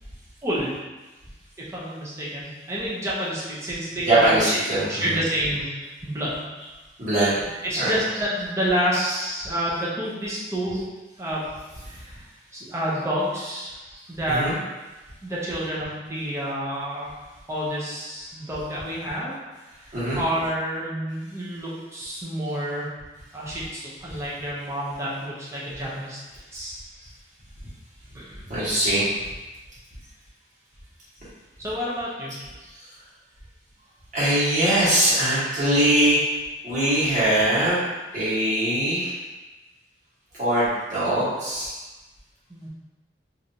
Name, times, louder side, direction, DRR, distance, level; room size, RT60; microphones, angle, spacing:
voice 1, 0.4-0.7 1.6-4.3 4.9-6.5 7.6-10.8 11.2-11.4 11.8-12.2 12.5-13.8 14.1-14.6 15.2-17.1 17.5-19.3 19.7-23.0 23.3-26.2 26.5-26.8 28.1-28.4 31.6-32.4 42.5-42.7, equal, 15° right, -7 dB, 0.7 m, -29 dB
voice 2, 4.1-5.0 7.0-7.4 7.8-7.9 14.3-14.5 19.9-20.2 28.5-29.1 34.1-36.2 36.6-37.8 38.1-39.1 40.4-41.8, right 1 dB, 45° right, -11 dB, 1.4 m, -21 dB
3.2 x 2.6 x 2.7 m, 1.2 s
head